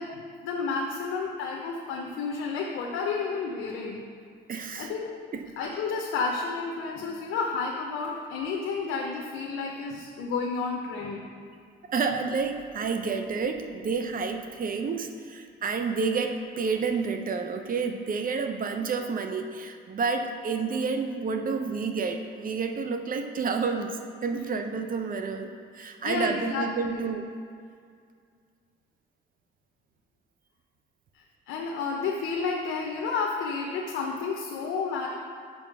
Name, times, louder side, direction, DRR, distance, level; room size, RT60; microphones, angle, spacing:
voice 1, 0.0-4.0 4.8-5.1 5.6-11.3 26.0-27.1 31.1-35.1, left 4 dB, 85° left, -1 dB, 0.7 m, -31 dB
voice 2, 4.5-4.9 5.3-5.5 11.9-27.3, right 5 dB, 45° right, 5 dB, 0.6 m, -30 dB
6.2 x 5.1 x 4.7 m, 2.2 s
cardioid pair, 90°, 20 cm